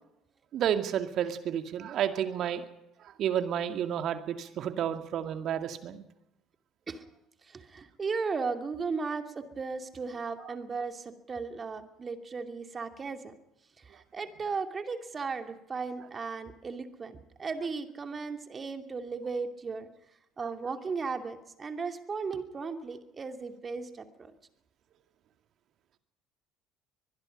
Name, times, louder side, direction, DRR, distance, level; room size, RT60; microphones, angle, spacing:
voice 1, 0.5-2.6 3.2-6.0, right 9 dB, 50° right, 8 dB, 2.1 m, -31 dB
voice 2, 7.4-13.3 13.8-19.9 20.4-24.3, right 4 dB, 30° right, 6 dB, 2.6 m, -36 dB
24.0 x 21.0 x 5.3 m, 0.87 s
figure-of-eight pair, 55°, 0 cm